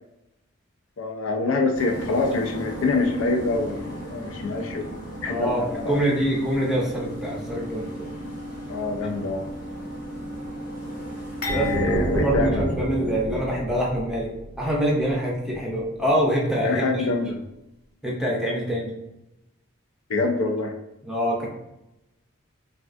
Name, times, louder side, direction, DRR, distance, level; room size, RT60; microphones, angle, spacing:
voice 1, 1.0-4.8 5.2-6.2 8.7-9.5 11.5-12.6 16.6-17.4 20.1-20.8, left 3 dB, 70° left, 4 dB, 0.4 m, -25 dB
sound 1, 1.7-12.3, equal, 40° left, 0.8 m, -36 dB
voice 2, 5.3-8.1 11.5-14.3 14.6-17.1 18.0-18.9 21.1-21.5, equal, ahead, -4 dB, 0.5 m, -25 dB
sound 2, 11.4-13.6 13.9-14.1 15.0-15.1, left 1 dB, 90° left, 1.4 m, -36 dB
sound 3, 11.5-15.2, right 1 dB, 70° right, 0.5 m, -29 dB
3.3 x 2.3 x 2.5 m, 0.89 s
head